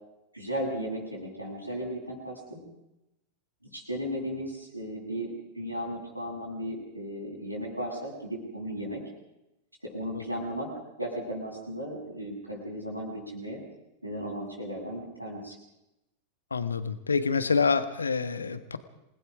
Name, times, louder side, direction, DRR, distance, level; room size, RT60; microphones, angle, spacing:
voice 1, 0.3-2.6 3.7-9.0 9.8-10.7 11.0-13.6 14.0-15.6, equal, 90° right, -3 dB, 7.8 m, -35 dB
voice 2, 16.5-18.8, left 5 dB, 75° left, 12 dB, 1.5 m, -27 dB
27.5 x 20.0 x 5.1 m, 0.90 s
figure-of-eight pair, 90°, 0 cm